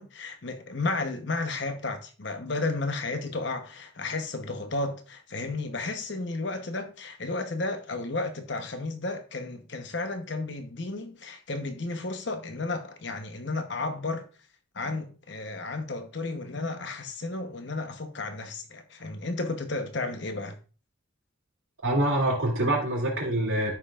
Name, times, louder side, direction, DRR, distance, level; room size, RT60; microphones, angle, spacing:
voice 1, 0.0-14.2 14.7-20.6, left 3 dB, 60° left, 1.0 m, -33 dB
voice 2, 21.8-23.7, right 1 dB, 85° right, 2.8 m, -25 dB
13.0 x 5.5 x 2.4 m
head